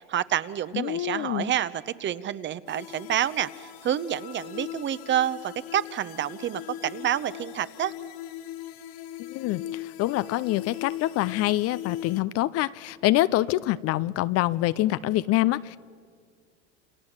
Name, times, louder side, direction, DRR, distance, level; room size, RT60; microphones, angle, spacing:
voice 1, 0.0-7.9, right 10 dB, 35° right, 15 dB, 0.9 m, -28 dB
voice 2, 0.7-1.5 9.2-15.8, left 16 dB, 45° left, 16 dB, 0.6 m, -26 dB
sound 1, 2.7-12.2, left 12 dB, 65° left, 1.6 m, -40 dB
28.5 x 27.0 x 7.4 m, 2.1 s
hypercardioid pair, 100°, 35 cm